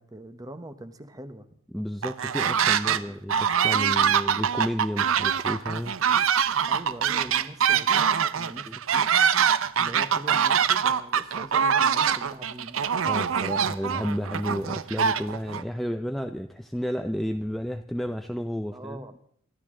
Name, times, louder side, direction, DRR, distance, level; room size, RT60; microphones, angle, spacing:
voice 1, 0.0-1.5 2.8-3.2 6.7-9.1 9.7-12.8 18.7-19.2, right 1 dB, 20° right, 11 dB, 1.0 m, -42 dB
voice 2, 1.7-6.0 8.7-8.8 13.0-19.0, equal, ahead, 6 dB, 0.5 m, -32 dB
sound 1, 2.0-3.0 3.3-15.6, right 7 dB, 70° right, 0.6 m, -24 dB
23.5 x 13.0 x 3.8 m, 0.63 s
head